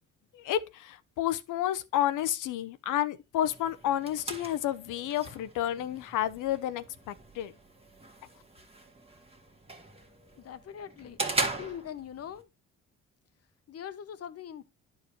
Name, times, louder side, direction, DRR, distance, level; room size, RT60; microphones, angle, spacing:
voice 1, 0.3-7.5, left 12 dB, 85° left, 0.8 m, -31 dB
sound 1, 3.4-12.4, right 2 dB, 20° right, 1.6 m, -39 dB
voice 2, 10.4-11.2 11.6-12.5 13.7-14.6, left 9 dB, 50° left, 0.9 m, -42 dB
11.5 x 4.6 x 3.1 m
cardioid pair, 90°, 30 cm